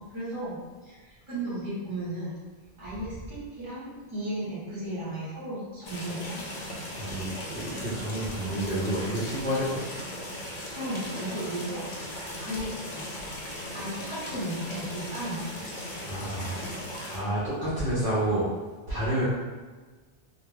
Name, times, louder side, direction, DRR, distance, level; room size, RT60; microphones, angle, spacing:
voice 1, 0.1-2.3 2.8-6.4 10.7-11.9 12.4-13.1 13.7-15.4, right 1 dB, 30° right, -9 dB, 0.9 m, -35 dB
sound 1, 5.8-17.2, left 1 dB, 50° left, 0.5 m, -38 dB
voice 2, 7.0-9.8 16.0-16.7 17.1-18.5 18.9-19.3, right 1 dB, 65° right, -8 dB, 0.8 m, -29 dB
2.2 x 2.2 x 3.1 m, 1.3 s
omnidirectional pair, 1.0 m